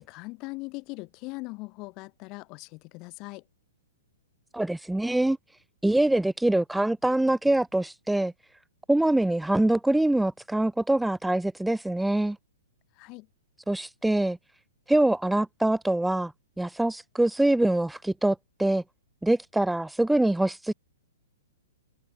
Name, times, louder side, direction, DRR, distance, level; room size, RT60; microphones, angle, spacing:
voice 1, 0.0-3.4 13.0-13.3, left 25 dB, 30° left, 1.0 m, -40 dB
voice 2, 4.5-5.4 5.8-8.3 8.9-12.4 13.7-14.4 14.9-16.3 16.6-18.8 19.2-20.7, right 1 dB, ahead, 0.6 m, -24 dB
hypercardioid pair, 160°, 0 cm